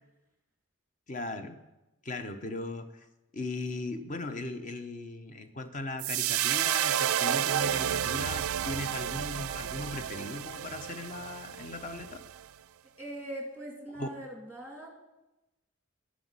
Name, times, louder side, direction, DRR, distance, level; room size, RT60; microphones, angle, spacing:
voice 1, 1.1-1.6 2.0-2.9 3.3-12.2 14.0-14.1, left 2 dB, 35° left, 8 dB, 0.8 m, -38 dB
sound 1, 6.0-12.4, right 10 dB, 90° right, 0.4 m, -31 dB
voice 2, 13.0-14.9, right 1 dB, 5° left, -1 dB, 2.2 m, -41 dB
11.5 x 6.3 x 8.2 m, 1.0 s
head